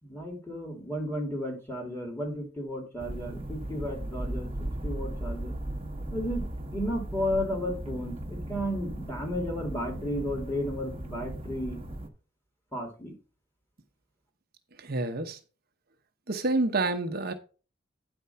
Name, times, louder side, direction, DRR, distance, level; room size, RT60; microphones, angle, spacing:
voice 1, 0.0-4.5 4.8-5.5 6.1-6.5 6.7-11.8 12.7-13.1, equal, 15° left, 2.7 m, -33 dB
sound 1, 3.0-12.1, right 1 dB, 30° right, 1.1 m, -37 dB
voice 2, 14.8-15.4 16.3-17.3, right 2 dB, 50° right, 0.9 m, -28 dB
9.4 x 4.4 x 5.6 m
head